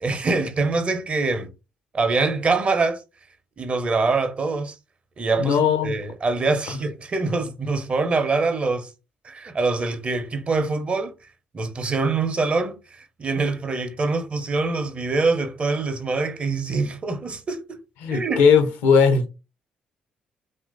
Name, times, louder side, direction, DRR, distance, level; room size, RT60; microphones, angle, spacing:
voice 1, 0.0-1.5 1.9-3.0 3.6-4.8 5.2-8.9 9.2-11.1 11.5-17.8 18.1-18.4, right 3 dB, 40° right, 0.6 m, -24 dB
voice 2, 5.4-5.9 18.0-19.3, left 6 dB, 70° left, 0.5 m, -18 dB
2.9 x 2.5 x 2.4 m
hypercardioid pair, 45°, 3 cm